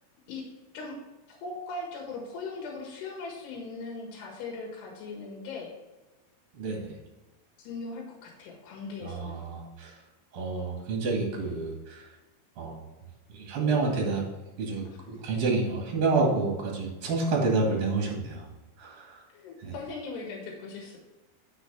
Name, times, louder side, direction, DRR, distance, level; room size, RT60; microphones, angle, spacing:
voice 1, 1.3-5.7 7.6-9.4 14.9-15.1 19.3-21.0, left 3 dB, 90° left, 0 dB, 3.6 m, -39 dB
voice 2, 6.6-6.9 9.0-9.9 10.3-12.0 12.6-12.8 13.4-14.2 14.6-18.5 18.8-19.2 19.6-19.7, right 3 dB, 45° right, -1 dB, 2.3 m, -28 dB
9.8 x 6.6 x 3.3 m, 1.1 s
omnidirectional pair, 4.6 m